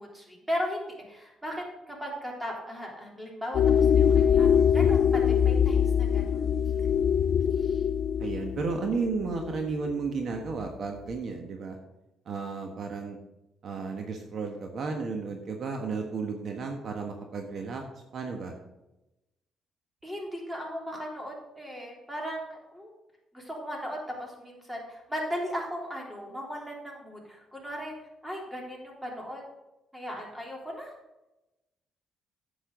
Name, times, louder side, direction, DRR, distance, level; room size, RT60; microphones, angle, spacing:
voice 1, 0.0-6.4 6.7-7.0 7.6-7.8 20.0-22.9 23.3-27.9 28.2-29.4 29.9-30.9, equal, 10° right, -1 dB, 3.4 m, -37 dB
sound 1, 3.5-10.1, left 8 dB, 65° left, 0.3 m, -23 dB
voice 2, 8.2-11.8 12.3-13.2 13.6-17.8 18.1-18.6, right 4 dB, 60° right, 3 dB, 1.3 m, -33 dB
10.5 x 7.9 x 3.9 m, 0.98 s
cardioid pair, 90°, 0 cm